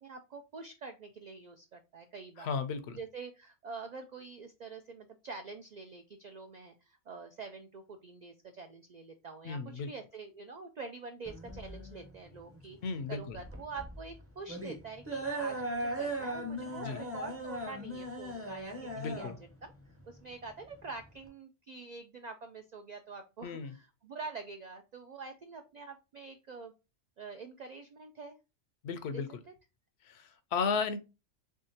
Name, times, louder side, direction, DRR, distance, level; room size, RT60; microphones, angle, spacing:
voice 1, 0.0-2.5 2.9-12.8 13.1-19.3 19.6-19.7 20.1-26.7 27.2-28.4 29.1-29.5, right 4 dB, 75° right, 0.3 m, -46 dB
voice 2, 2.4-3.0 9.4-9.9 12.8-13.4 16.8-17.0 19.0-19.4 23.4-23.7 28.8-29.3 30.0-31.0, left 5 dB, 65° left, 0.8 m, -34 dB
sound 1, 11.2-21.3, right 1 dB, 15° right, 0.6 m, -39 dB
3.6 x 3.5 x 2.7 m
omnidirectional pair, 1.3 m